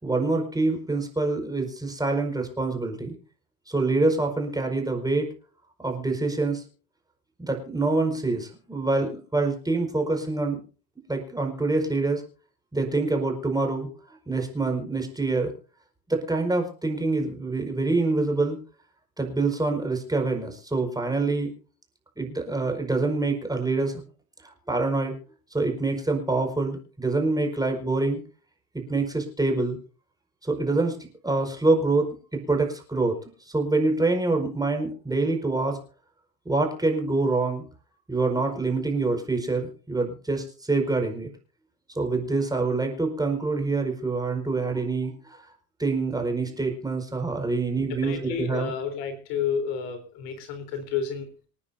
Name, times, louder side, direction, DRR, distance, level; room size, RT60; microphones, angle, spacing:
voice 1, 0.0-3.2 3.7-5.3 5.8-6.6 7.4-10.6 11.1-12.2 12.7-13.9 14.3-15.5 16.1-18.6 19.2-21.5 22.2-24.0 24.4-25.1 25.5-28.2 28.7-29.8 30.4-31.0 31.2-33.2 33.5-35.8 36.4-37.6 38.1-41.3 41.9-45.4 45.8-48.7, right 3 dB, 10° right, 3 dB, 4.9 m, -26 dB
voice 2, 48.0-51.5, left 7 dB, 55° left, 7 dB, 3.9 m, -31 dB
27.5 x 9.9 x 2.7 m, 0.38 s
hypercardioid pair, 80°, 48 cm